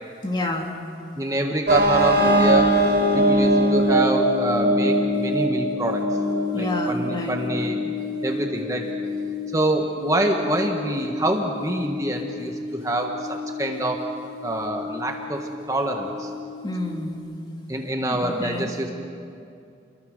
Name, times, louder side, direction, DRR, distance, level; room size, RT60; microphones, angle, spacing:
voice 1, 0.2-0.7 6.5-7.4 16.6-17.2 18.1-18.9, left 2 dB, 25° left, 2 dB, 2.2 m, -29 dB
voice 2, 1.2-2.7 3.1-6.0 6.5-7.8 8.2-8.8 9.5-12.5 12.8-14.0 14.4-16.3 17.7-18.9, right 1 dB, 15° right, 2 dB, 1.4 m, -26 dB
sound 1, 1.7-17.1, equal, 55° right, 3.6 m, -24 dB
30.0 x 22.0 x 6.5 m, 2.5 s
head